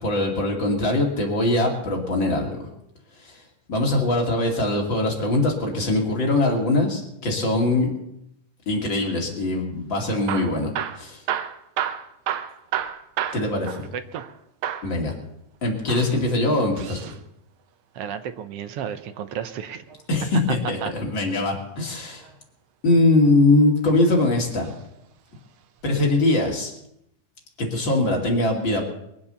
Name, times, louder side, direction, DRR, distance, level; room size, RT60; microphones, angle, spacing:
voice 1, 0.0-2.6 3.2-3.4 3.7-7.9 8.7-10.7 11.0-11.2 13.3-13.8 14.8-15.1 15.6-17.0 20.1-22.2 22.8-24.7 25.8-26.7 27.6-28.8, left 2 dB, 40° left, 0 dB, 3.2 m, -22 dB
Hammer / Drill, 10.1-14.4 14.6-14.9 15.8-17.2 18.9-20.2 21.9-22.3 23.1-23.9 24.6-24.8 25.1-25.2 25.8-25.9, right 10 dB, 90° right, 1.1 m, -31 dB
voice 2, 13.9-14.2 17.9-19.8 20.8-20.9, right 8 dB, 70° right, 10 dB, 1.5 m, -32 dB
22.5 x 7.8 x 6.9 m, 0.79 s
omnidirectional pair, 3.4 m